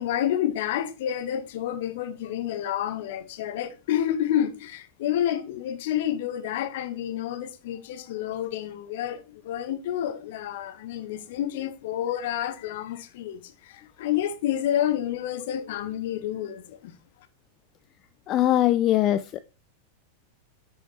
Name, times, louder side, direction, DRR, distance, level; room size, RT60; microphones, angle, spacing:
voice 1, 0.0-16.9, left 11 dB, 55° left, 0.8 m, -29 dB
voice 2, 18.3-19.4, left 13 dB, 35° left, 0.3 m, -21 dB
8.1 x 5.4 x 3.2 m
figure-of-eight pair, 90°, 0 cm